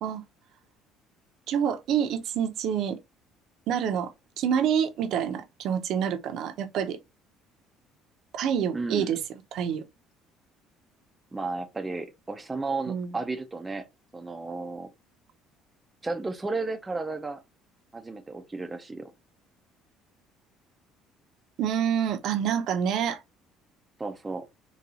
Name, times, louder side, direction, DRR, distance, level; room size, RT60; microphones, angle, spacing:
voice 1, 1.5-3.0 3.7-7.0 8.3-9.2 9.5-9.8 12.9-13.2 21.6-23.2, right 8 dB, 55° right, 0.6 m, -27 dB
voice 2, 8.7-9.1 11.3-13.9 14.1-14.9 16.0-17.4 17.9-19.1 24.0-24.4, right 3 dB, 10° right, 0.4 m, -33 dB
4.0 x 2.3 x 2.7 m
cardioid pair, 155°, 0 cm